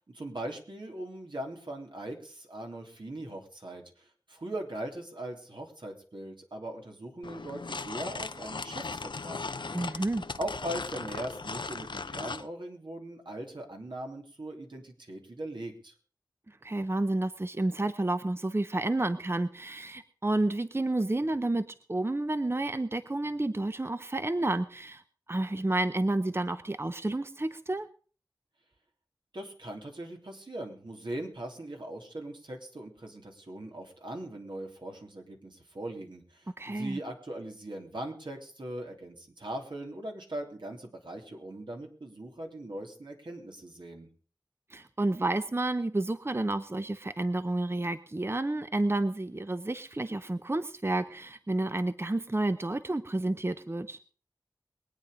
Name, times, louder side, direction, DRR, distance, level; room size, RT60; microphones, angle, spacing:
voice 1, 0.0-9.7 10.4-15.9 29.3-44.1, right 1 dB, 80° right, 1 dB, 3.2 m, -40 dB
sound 1, 7.2-12.5, left 4 dB, 80° left, 0.6 m, -38 dB
voice 2, 9.7-10.2 16.5-25.0 25.3-27.9 36.6-37.0 44.7-54.0, right 2 dB, 30° right, 12 dB, 0.7 m, -30 dB
22.5 x 9.0 x 5.0 m, 0.42 s
wide cardioid pair, 45°, 8 cm